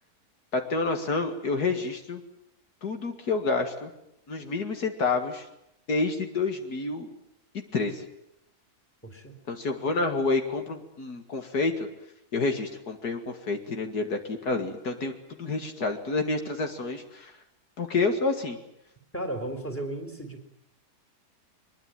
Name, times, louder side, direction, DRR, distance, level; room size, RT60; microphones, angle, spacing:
voice 1, 0.5-2.2 2.8-3.9 4.3-5.4 5.9-7.1 7.5-8.1 9.5-11.7 12.3-15.1 15.4-17.3 17.8-18.6, left 3 dB, 75° left, 5 dB, 2.5 m, -28 dB
voice 2, 9.0-9.3 19.1-20.5, right 1 dB, 10° left, 5 dB, 4.0 m, -35 dB
22.5 x 21.5 x 9.1 m, 0.82 s
omnidirectional pair, 1.7 m